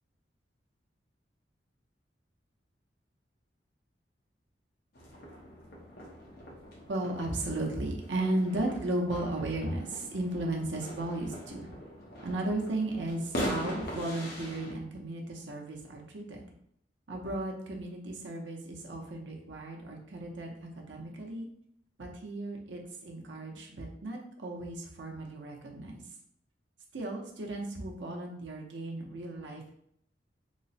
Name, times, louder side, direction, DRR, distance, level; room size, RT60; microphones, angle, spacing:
sound 1, 4.9-14.7, equal, 60° left, 0.8 m, -41 dB
voice 1, 6.9-11.7 12.2-16.5 17.1-21.5 22.0-26.0 26.9-29.7, right 1 dB, 75° right, 0 dB, 0.7 m, -35 dB
3.1 x 2.1 x 4.0 m, 0.69 s
head